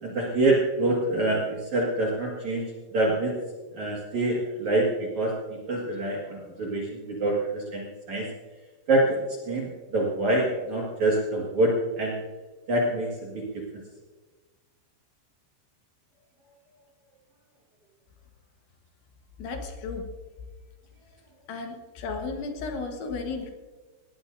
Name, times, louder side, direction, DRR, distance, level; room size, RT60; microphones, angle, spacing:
voice 1, 0.0-2.7 2.9-3.3 3.7-5.3 5.7-8.3 8.9-12.2 12.7-13.6, right 2 dB, 55° right, -2 dB, 2.2 m, -26 dB
voice 2, 19.4-20.1 21.5-23.5, left 4 dB, 70° left, 4 dB, 3.5 m, -34 dB
19.0 x 18.5 x 2.6 m, 1.3 s
omnidirectional pair, 5.9 m